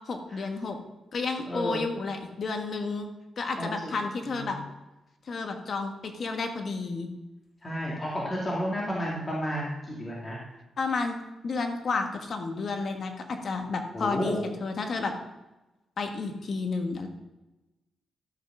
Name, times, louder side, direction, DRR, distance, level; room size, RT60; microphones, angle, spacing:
voice 1, 0.0-0.8 1.1-3.1 3.4-4.6 5.3-7.1 10.8-11.2 11.4-15.1 16.0-17.1, left 4 dB, 50° left, 5 dB, 1.5 m, -31 dB
voice 2, 1.5-1.8 3.6-3.9 4.3-4.6 7.6-10.4 13.9-14.4, equal, 25° left, -5 dB, 2.5 m, -31 dB
13.0 x 5.6 x 6.2 m, 1.0 s
cardioid pair, 110°, 0 cm